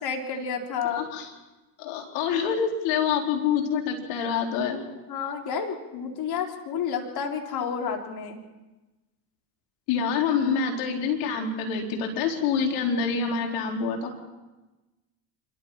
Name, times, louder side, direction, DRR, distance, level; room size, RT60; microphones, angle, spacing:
voice 1, 0.0-1.0 4.8-4.9 5.1-8.4, left 6 dB, 55° left, 2 dB, 3.7 m, -30 dB
voice 2, 0.9-1.3 1.8-4.8 9.9-14.2, left 6 dB, 70° left, 1 dB, 4.3 m, -26 dB
27.0 x 13.0 x 7.5 m, 1.1 s
hypercardioid pair, 70°, 46 cm